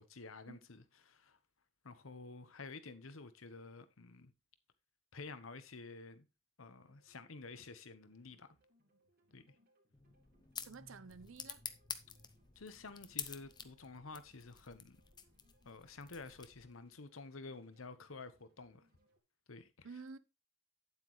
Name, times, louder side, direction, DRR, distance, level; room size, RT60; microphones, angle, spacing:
voice 1, 0.0-1.4 1.8-4.3 5.1-6.3 6.6-8.6 9.3-9.6 12.5-15.0 15.6-18.8 19.5-19.9, left 3 dB, 90° left, 1.1 m, -51 dB
sound 1, 6.8-19.2, equal, 50° right, 3.0 m, -75 dB
sound 2, 9.9-16.8, left 7 dB, 20° left, 0.7 m, -49 dB
voice 2, 10.7-11.6 19.8-20.2, right 4 dB, 75° right, 0.7 m, -51 dB
9.1 x 8.2 x 3.1 m
head